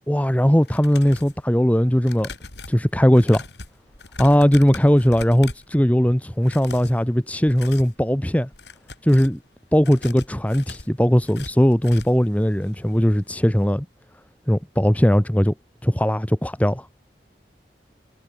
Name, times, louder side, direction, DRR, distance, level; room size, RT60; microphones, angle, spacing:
voice 1, 0.1-2.3 2.7-3.4 4.2-8.5 9.0-9.4 9.7-13.9 14.5-15.5 15.8-16.9, equal, 10° left, 1.1 m, -19 dB
sound 1, 0.6-1.4 2.0-5.7 6.4-7.0 7.4-8.0 8.4-9.4 9.8-12.3 12.6-12.7 13.1-13.2, left 3 dB, 80° left, 6.2 m, -39 dB
head